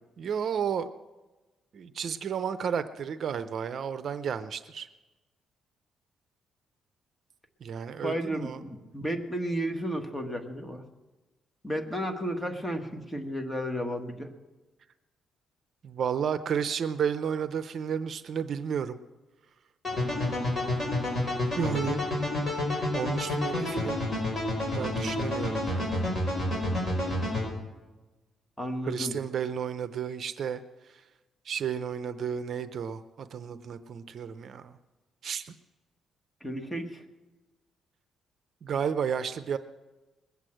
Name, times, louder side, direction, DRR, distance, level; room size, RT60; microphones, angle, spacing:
voice 1, 0.2-0.9 1.7-4.9 7.6-8.6 15.8-19.0 21.6-22.0 22.9-24.0 24.7-25.9 28.8-30.6 31.5-34.7 35.2-35.5 38.6-39.6, right 7 dB, 55° right, 12 dB, 0.6 m, -32 dB
voice 2, 8.0-10.8 11.6-14.3 28.6-29.2 36.4-37.0, equal, 10° left, 4 dB, 1.5 m, -33 dB
sound 1, 19.8-27.5, left 1 dB, 25° left, 6.1 m, -29 dB
20.5 x 8.2 x 7.8 m, 1.2 s
cardioid pair, 125°, 0 cm